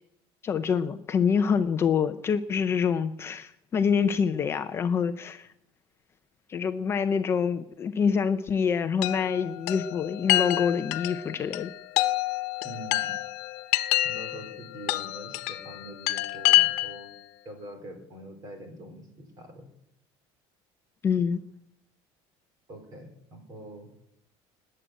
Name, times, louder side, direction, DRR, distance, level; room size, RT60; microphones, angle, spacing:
voice 1, 0.4-5.5 6.5-11.7 21.0-21.4, left 6 dB, 20° left, 9 dB, 0.5 m, -26 dB
Chime, 9.0-17.1, left 18 dB, 85° left, 1.0 m, -27 dB
voice 2, 12.6-13.2 14.0-17.1 17.4-19.7 22.7-23.9, right 1 dB, 30° right, 6 dB, 3.9 m, -44 dB
20.0 x 7.7 x 9.1 m, 0.78 s
cardioid pair, 180°, 12 cm